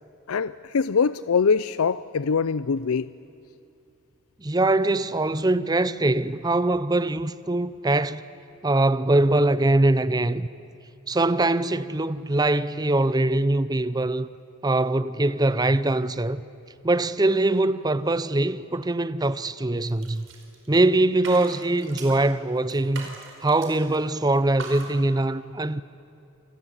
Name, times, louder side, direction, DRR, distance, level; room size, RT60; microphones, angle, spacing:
voice 1, 0.3-3.1, left 5 dB, 90° left, 0.5 m, -23 dB
voice 2, 4.4-8.2 8.6-10.5 11.1-14.3 14.6-16.4 16.8-20.3 20.7-25.8, right 2 dB, 20° right, 0.6 m, -22 dB
sound 1, 19.8-20.8 21.1-22.3 22.7-24.0 24.3-24.9, right 3 dB, 60° right, 4.9 m, -40 dB
28.5 x 20.0 x 9.9 m
head